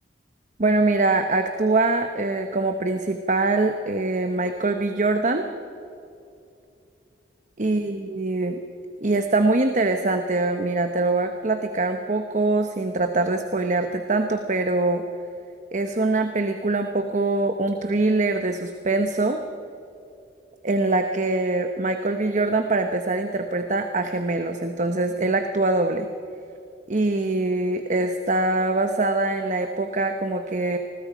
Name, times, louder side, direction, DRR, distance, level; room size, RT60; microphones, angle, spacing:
voice 1, 0.6-5.5 7.6-8.6 9.0-15.0 15.7-19.4 20.6-26.1 26.9-30.8, right 2 dB, 45° right, 6 dB, 1.0 m, -23 dB
27.5 x 21.0 x 5.1 m, 2.6 s
head